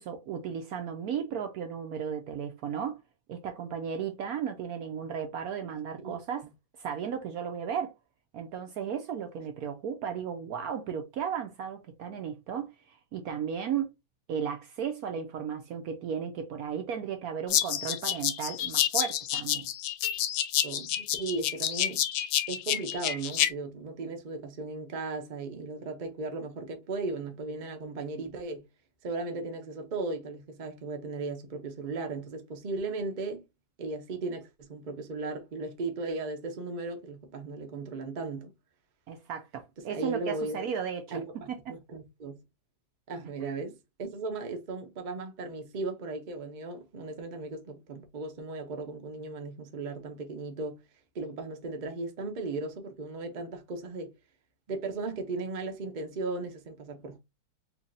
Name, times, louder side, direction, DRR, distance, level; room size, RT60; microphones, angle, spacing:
voice 1, 0.0-3.0 3.3-6.5 6.8-7.9 8.3-13.9 14.3-19.7 39.1-41.2 41.5-41.7, right 7 dB, 70° right, 0.9 m, -35 dB
sound 1, 17.5-23.5, left 11 dB, 75° left, 1.1 m, -29 dB
voice 2, 20.6-22.0 22.5-28.6 29.0-33.4 33.8-38.5 39.9-40.6 41.1-41.5 41.9-42.3 43.1-50.8 51.1-54.1 54.7-57.2, right 3 dB, 50° right, 0.5 m, -36 dB
4.5 x 2.7 x 2.6 m
omnidirectional pair, 2.0 m